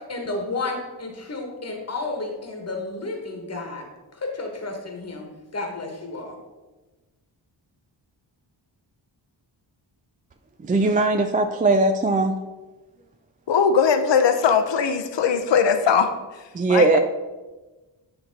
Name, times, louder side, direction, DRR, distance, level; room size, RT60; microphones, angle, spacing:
voice 1, 0.0-3.8 4.2-5.3 5.5-6.3, left 2 dB, 35° left, 2 dB, 1.2 m, -31 dB
voice 2, 10.6-12.4 16.5-17.0, right 3 dB, 20° right, 6 dB, 0.3 m, -19 dB
voice 3, 13.5-16.9, left 6 dB, 70° left, 8 dB, 0.7 m, -20 dB
8.7 x 2.9 x 5.2 m, 1.2 s
wide cardioid pair, 70°, 45 cm